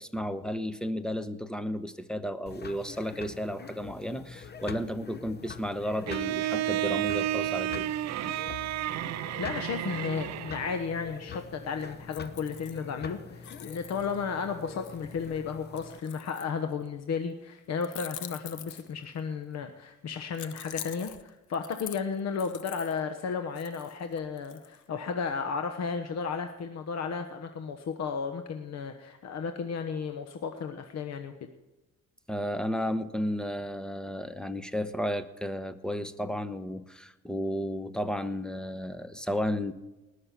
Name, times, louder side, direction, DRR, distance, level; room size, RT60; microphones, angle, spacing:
voice 1, 0.0-7.9 32.3-39.7, equal, 5° left, 11 dB, 1.0 m, -33 dB
sound 1, 2.5-16.0, left 6 dB, 35° left, 1.0 m, -45 dB
Bowed string instrument, 6.1-10.9, right 14 dB, 60° right, 0.5 m, -31 dB
voice 2, 9.4-31.5, left 6 dB, 60° left, 7 dB, 1.1 m, -34 dB
sound 2, 11.8-13.1 13.4-16.9 17.8-19.2 20.3-23.0 23.6-24.8, left 11 dB, 75° left, 0.8 m, -45 dB
19.5 x 6.6 x 5.9 m, 1.0 s
cardioid pair, 90°, 30 cm